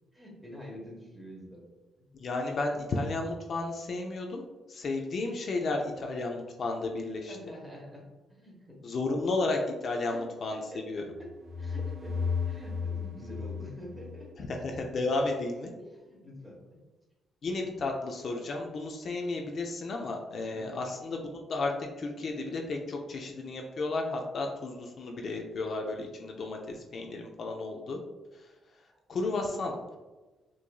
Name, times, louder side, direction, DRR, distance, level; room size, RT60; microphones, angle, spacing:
voice 1, 0.1-1.7 7.3-8.8 10.0-10.2 10.5-14.5 15.8-16.8 20.5-20.8 29.8-29.9, equal, 10° right, -2 dB, 1.2 m, -46 dB
voice 2, 2.2-7.4 8.8-10.6 10.9-11.0 14.4-15.7 17.4-21.2 21.5-21.7 22.0-28.0 28.4-28.5 29.1-30.0, left 2 dB, 55° left, 1 dB, 0.4 m, -33 dB
sound 1, 11.1-14.8, left 5 dB, 35° right, 0.5 m, -35 dB
4.5 x 2.5 x 2.3 m, 1.2 s
cardioid pair, 90°, 0 cm